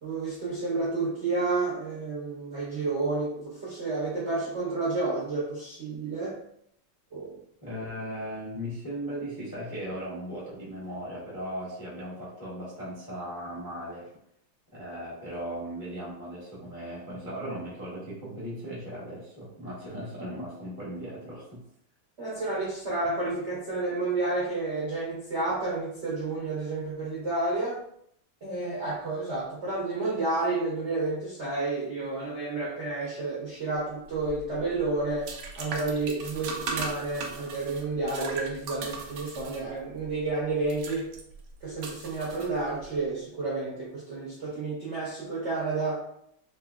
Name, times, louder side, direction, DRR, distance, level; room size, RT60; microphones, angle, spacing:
voice 1, 0.0-6.4 7.1-7.3 22.2-27.8 28.4-41.1 41.6-46.0, right 3 dB, 55° right, -7 dB, 0.7 m, -30 dB
voice 2, 7.6-14.1 14.7-21.6, equal, 20° left, -7 dB, 0.6 m, -37 dB
sound 1, 34.1-43.0, right 4 dB, 75° right, 1.0 m, -39 dB
3.8 x 2.9 x 2.3 m, 0.72 s
omnidirectional pair, 2.3 m